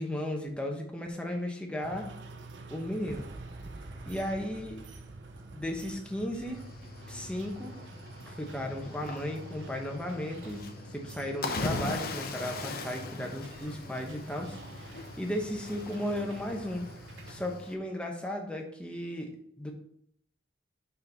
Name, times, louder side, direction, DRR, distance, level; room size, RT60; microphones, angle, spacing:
voice 1, 0.0-2.1 2.7-3.3 4.1-4.8 5.5-6.7 7.1-7.8 8.2-10.6 10.9-14.6 14.9-16.8 17.3-19.7, left 1 dB, 5° left, 1 dB, 0.9 m, -35 dB
sound 1, 1.8-17.4, right 3 dB, 75° right, 0.7 m, -49 dB
Boom, 3.1-9.0, right 2 dB, 20° right, 0.4 m, -49 dB
Cricket / Waves surf, 6.5-17.8, left 3 dB, 55° left, 0.8 m, -40 dB
5.3 x 5.2 x 4.0 m, 0.69 s
head